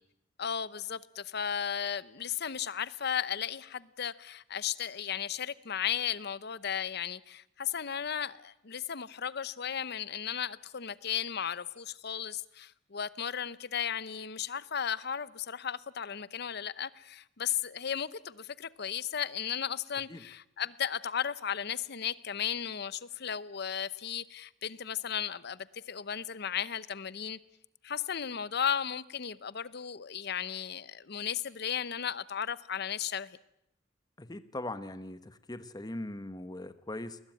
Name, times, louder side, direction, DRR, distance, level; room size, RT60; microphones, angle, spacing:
voice 1, 0.4-27.4 27.8-33.4, left 8 dB, 60° left, 0.8 m, -35 dB
voice 2, 34.2-37.2, left 1 dB, 20° left, 1.1 m, -40 dB
21.0 x 20.0 x 9.2 m
head